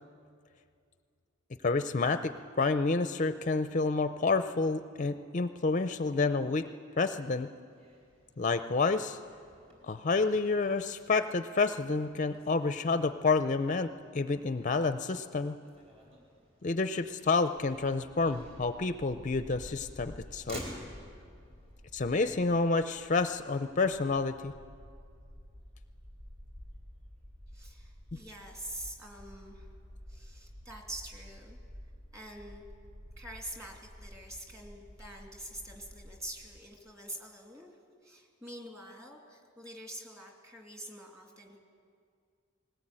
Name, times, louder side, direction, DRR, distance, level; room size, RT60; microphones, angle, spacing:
voice 1, 1.6-6.7 7.0-7.5 8.4-9.2 9.9-15.6 16.6-20.6 21.9-24.5 28.1-28.2, left 3 dB, 35° left, 10 dB, 0.5 m, -29 dB
Motor vehicle (road), 7.7-23.5, equal, 30° right, 4.5 m, -53 dB
Bark, 17.5-36.6, equal, 65° right, 4.2 m, -51 dB
voice 2, 27.5-29.7 30.1-31.6 32.1-32.6 33.2-37.7 38.0-41.6, right 1 dB, 15° right, 1 dB, 2.6 m, -46 dB
20.5 x 18.5 x 8.9 m, 2.2 s
head